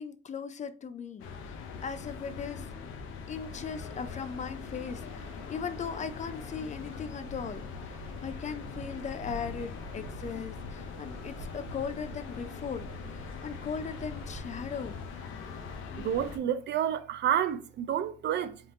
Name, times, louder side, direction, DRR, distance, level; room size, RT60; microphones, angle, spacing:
voice 1, 0.0-2.7 3.3-7.9 8.2-15.0, left 6 dB, 35° left, 0.4 m, -38 dB
sound 1, 1.2-16.4, left 5 dB, 90° left, 0.6 m, -42 dB
sound 2, 3.3-15.8, right 1 dB, 85° right, 1.1 m, -47 dB
voice 2, 16.0-18.6, right 10 dB, 60° right, 0.4 m, -29 dB
3.6 x 2.8 x 3.5 m
cardioid pair, 90°, 20 cm